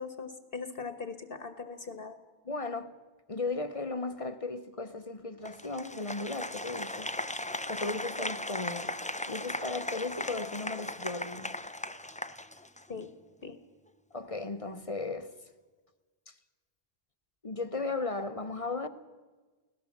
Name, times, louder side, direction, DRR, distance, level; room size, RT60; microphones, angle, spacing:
voice 1, 0.0-2.2 12.9-13.1 13.4-13.6, left 4 dB, 60° left, 1.4 m, -40 dB
voice 2, 2.4-2.9 3.3-7.1 7.7-8.9 9.3-11.5 14.1-15.3 16.3-16.4 17.4-18.9, left 3 dB, 35° left, 1.0 m, -36 dB
Applause, 5.4-13.0, left 1 dB, 10° left, 0.5 m, -37 dB
24.5 x 17.5 x 7.2 m
omnidirectional pair, 1.0 m